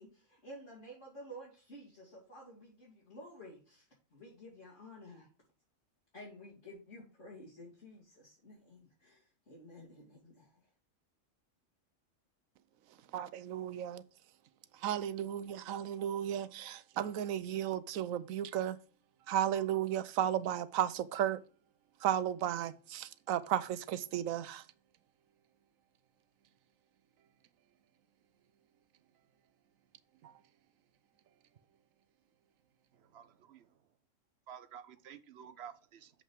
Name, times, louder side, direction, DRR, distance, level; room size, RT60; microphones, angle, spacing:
voice 1, 0.0-5.3 6.1-10.7, equal, 65° left, 2.9 m, -52 dB
voice 2, 13.1-14.0 14.8-18.8 19.3-21.4 22.0-24.6 30.2-30.3, right 10 dB, 80° right, 1.0 m, -34 dB
voice 3, 32.9-33.7 34.5-36.2, right 8 dB, 60° right, 0.8 m, -52 dB
7.2 x 5.6 x 4.6 m
omnidirectional pair, 1.4 m